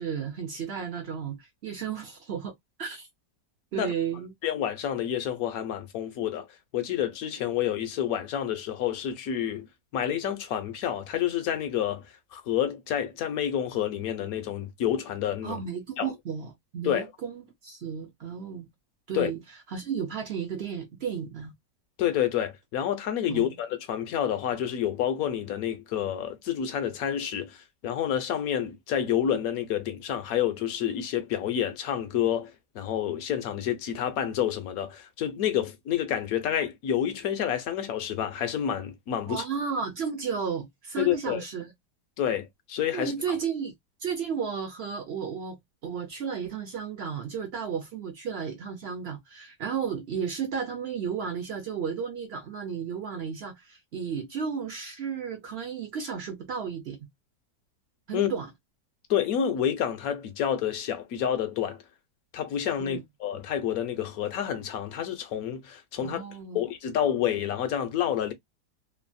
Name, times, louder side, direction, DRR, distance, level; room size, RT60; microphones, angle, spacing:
voice 1, 0.0-2.5 2.8-3.1 3.7-4.3 15.4-18.7 19.1-19.4 19.7-21.5 23.3-23.5 39.3-41.7 42.9-43.7 44.0-57.0 58.1-58.5 62.8-63.0 66.0-66.6, right 6 dB, 60° right, 0.6 m, -33 dB
voice 2, 4.4-6.5 6.7-9.7 9.9-12.0 12.3-15.6 16.0-16.1 16.8-17.1 19.1-19.3 22.0-39.4 41.0-41.4 42.2-43.1 58.1-58.3 59.1-61.8 62.3-66.2 66.5-68.3, left 10 dB, 70° left, 1.0 m, -29 dB
3.2 x 2.1 x 2.4 m
omnidirectional pair, 1.8 m